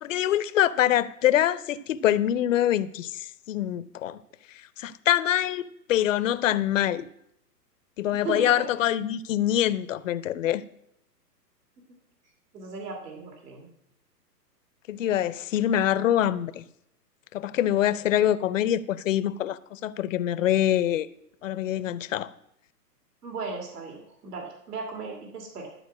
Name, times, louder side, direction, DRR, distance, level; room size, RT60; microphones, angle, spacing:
voice 1, 0.0-4.2 4.8-7.0 8.0-10.6 14.9-16.6 17.3-21.1 21.4-22.3, left 11 dB, 50° left, 0.6 m, -25 dB
voice 2, 8.2-8.6 12.5-13.7 23.2-25.7, right 4 dB, 70° right, 2.7 m, -36 dB
12.0 x 4.4 x 8.2 m
hypercardioid pair, 140°, 49 cm